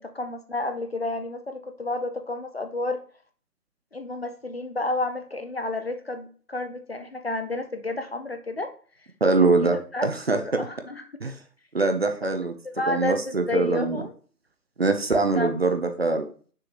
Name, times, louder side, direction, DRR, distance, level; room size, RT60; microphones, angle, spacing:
voice 1, 0.0-3.0 3.9-8.7 9.4-11.0 12.2-14.1 15.4-15.5, left 2 dB, 40° left, 7 dB, 0.7 m, -31 dB
voice 2, 9.2-10.6 11.2-11.4 11.7-12.5 12.9-14.0 14.8-16.3, right 3 dB, 40° right, 7 dB, 0.8 m, -23 dB
6.7 x 6.1 x 3.0 m, 0.42 s
figure-of-eight pair, 160°, 48 cm